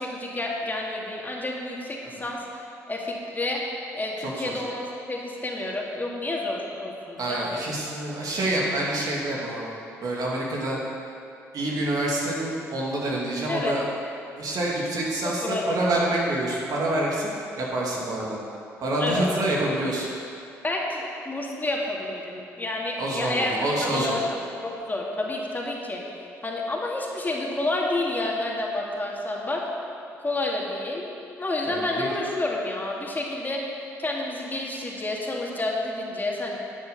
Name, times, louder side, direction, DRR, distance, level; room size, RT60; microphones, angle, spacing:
voice 1, 0.0-3.6 3.9-7.5 13.5-13.8 15.4-15.8 19.0-19.3 20.6-23.5 23.9-24.2 24.6-26.0 26.4-29.6 30.2-31.1 31.4-33.6 34.0-36.6, left 2 dB, 25° left, -2 dB, 2.3 m, -29 dB
voice 2, 4.2-4.5 7.2-9.7 10.0-10.8 11.5-13.8 14.4-17.3 17.6-18.4 18.8-20.1 23.0-24.2 31.7-32.1, right 1 dB, 60° right, -4 dB, 2.7 m, -27 dB
11.5 x 8.0 x 5.6 m, 2.6 s
hypercardioid pair, 50°, 7 cm